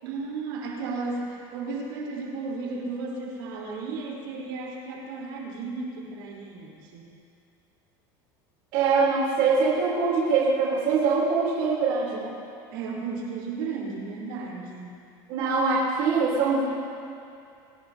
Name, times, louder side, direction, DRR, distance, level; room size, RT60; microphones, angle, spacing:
voice 1, 0.0-7.1 12.7-15.0, right 4 dB, 80° right, -4 dB, 4.4 m, -34 dB
voice 2, 8.7-12.3 15.3-16.6, right 4 dB, 60° right, -6 dB, 3.6 m, -23 dB
25.0 x 18.0 x 2.9 m, 2.5 s
supercardioid pair, 145°, 11 cm